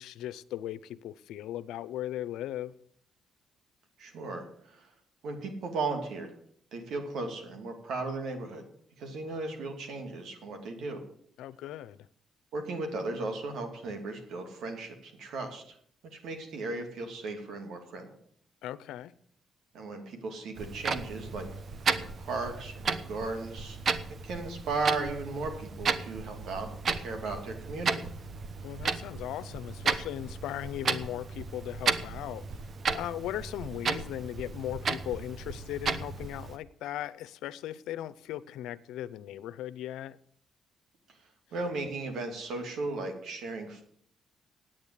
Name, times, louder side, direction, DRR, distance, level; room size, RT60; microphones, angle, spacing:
voice 1, 0.0-2.7 11.4-12.1 18.6-19.1 28.6-32.4 32.9-40.2, left 12 dB, 90° left, 0.5 m, -38 dB
voice 2, 4.0-4.9 5.2-6.3 6.7-8.6 9.0-11.0 12.5-15.7 16.0-18.1 19.7-21.5 21.8-23.8 24.2-26.7 27.0-28.0 41.5-43.8, right 3 dB, 75° right, 2.7 m, -36 dB
Clock, 20.6-36.6, right 5 dB, 50° right, 1.0 m, -34 dB
9.2 x 8.8 x 8.2 m
cardioid pair, 90°, 0 cm